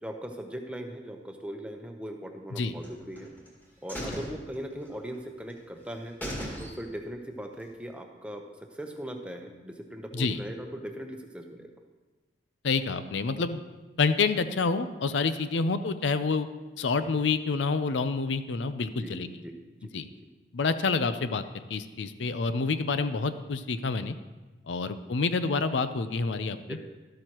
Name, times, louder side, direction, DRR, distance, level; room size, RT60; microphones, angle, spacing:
voice 1, 0.0-3.3 3.8-6.2 6.6-8.4 8.8-11.7 19.0-19.5 19.8-20.2 26.5-26.8, equal, 5° right, 3 dB, 0.8 m, -39 dB
sound 1, 2.8-3.5 3.9-5.2 5.5-5.6 5.9-6.0 6.2-7.1 7.5-7.6, equal, 10° left, 2.0 m, -38 dB
voice 2, 12.6-13.6 14.0-16.5 16.8-19.3 19.9-20.1 20.5-24.1 24.7-26.8, left 4 dB, 85° left, 11 dB, 0.6 m, -28 dB
12.5 x 12.5 x 3.0 m, 1.2 s
head